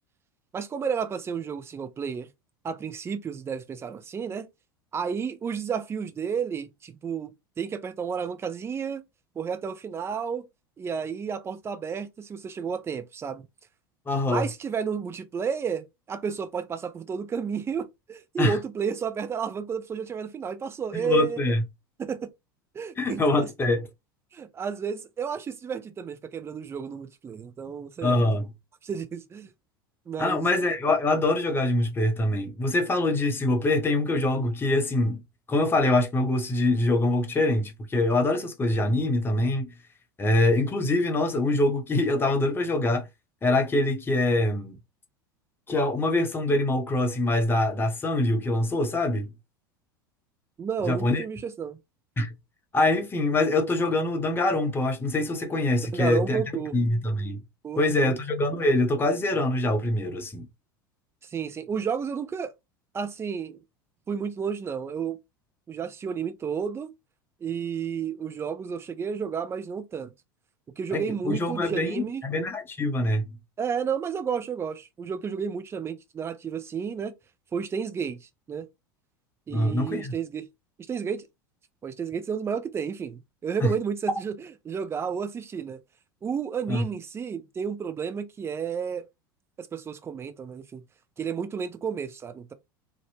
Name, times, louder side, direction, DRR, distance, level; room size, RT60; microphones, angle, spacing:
voice 1, 0.5-2.3 2.6-4.5 4.9-9.0 9.4-10.5 10.8-13.5 14.3-21.4 22.0-22.3 22.7-23.5 24.3-28.3 28.8-29.5 30.1-30.5 50.6-51.8 55.9-56.7 57.6-58.1 61.2-62.5 62.9-63.6 64.1-65.2 65.7-66.9 67.4-70.1 70.8-72.2 73.6-77.1 77.5-78.7 79.5-80.5 80.9-81.3 81.8-85.8 86.2-89.1 89.6-90.8 91.2-92.5, right 6 dB, 20° right, 0.5 m, -32 dB
voice 2, 14.1-14.5 18.4-18.6 20.9-21.6 23.0-23.8 28.0-28.5 30.2-35.2 35.5-39.7 40.2-43.1 43.4-44.7 45.7-49.3 50.8-51.2 52.2-52.3 52.7-57.4 57.8-60.5 70.9-73.4 79.5-80.1 83.6-83.7 86.7-86.8, left 2 dB, 20° left, 0.7 m, -24 dB
2.6 x 2.1 x 2.7 m
figure-of-eight pair, 80°, 12 cm